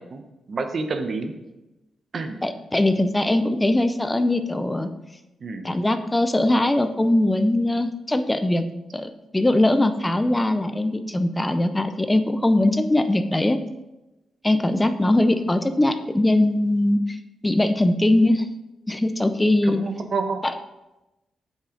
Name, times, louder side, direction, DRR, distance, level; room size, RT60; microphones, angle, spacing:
voice 1, 0.5-1.3 2.1-2.4 5.4-5.6 19.6-20.4, right 4 dB, 35° right, 7 dB, 0.8 m, -28 dB
voice 2, 2.4-4.9 5.6-8.6 8.9-13.6 14.4-17.2 17.4-18.5 18.9-19.8 20.4-20.5, left 1 dB, 10° left, 9 dB, 0.5 m, -21 dB
8.4 x 7.5 x 3.8 m, 1.0 s
wide cardioid pair, 165°, 0 cm